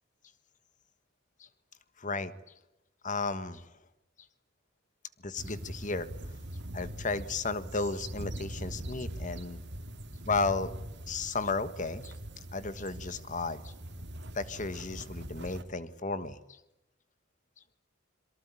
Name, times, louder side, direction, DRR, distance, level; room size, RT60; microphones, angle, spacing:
voice 1, 2.0-2.3 3.0-3.6 5.2-6.1 6.7-9.6 10.3-10.7 11.1-12.1 12.5-13.7 14.3-16.4, left 3 dB, 35° left, 13 dB, 1.5 m, -33 dB
sound 1, 5.4-15.6, right 1 dB, 55° right, 2.3 m, -42 dB
26.5 x 23.5 x 9.1 m, 0.92 s
head